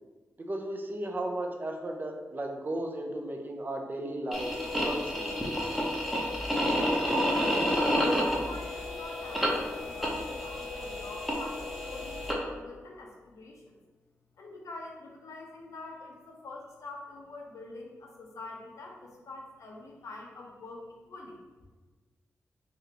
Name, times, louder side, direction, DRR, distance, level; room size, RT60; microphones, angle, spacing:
voice 1, 0.4-5.6, right 1 dB, 35° right, 2 dB, 0.5 m, -35 dB
sound 1, 4.3-12.3, equal, ahead, 0.7 m, -30 dB
voice 2, 7.2-13.8 14.4-21.4, left 2 dB, 80° left, 0 dB, 0.5 m, -45 dB
3.0 x 2.5 x 2.8 m, 1.3 s
cardioid pair, 50°, 5 cm